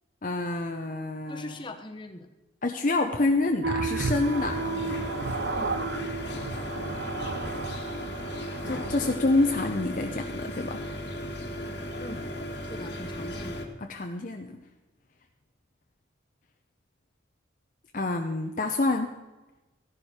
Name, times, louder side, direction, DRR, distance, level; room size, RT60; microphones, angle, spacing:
voice 1, 0.2-1.6 2.6-4.9 8.7-10.8 13.8-14.6 17.9-19.1, left 2 dB, 40° left, 4 dB, 0.7 m, -27 dB
voice 2, 1.3-2.3 5.5-5.7 11.9-12.3 12.6-13.6, left 1 dB, 25° left, 6 dB, 1.1 m, -41 dB
sound 1, 3.6-9.6, right 4 dB, 60° right, 0.7 m, -33 dB
sound 2, 4.1-13.7, left 1 dB, 55° left, 1.6 m, -36 dB
14.5 x 11.5 x 4.4 m, 1.1 s
head